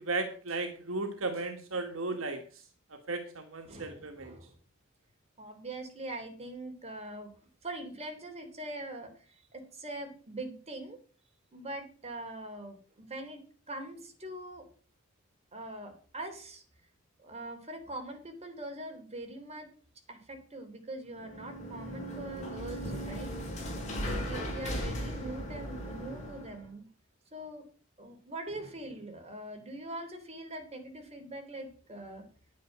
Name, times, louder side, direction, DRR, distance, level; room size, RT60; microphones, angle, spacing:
voice 1, 0.0-2.4 3.1-4.3, right 3 dB, 70° right, 6 dB, 1.6 m, -35 dB
voice 2, 3.7-4.5 5.4-7.3 7.6-11.0 11.5-13.4 13.7-14.7 15.5-16.6 17.2-19.7 20.1-23.3 24.1-26.9 27.3-27.6 28.0-32.3, right 1 dB, 30° right, 4 dB, 3.2 m, -42 dB
sound 1, 21.1-26.6, equal, 35° left, 6.2 m, -37 dB
10.0 x 9.4 x 6.0 m, 0.40 s
head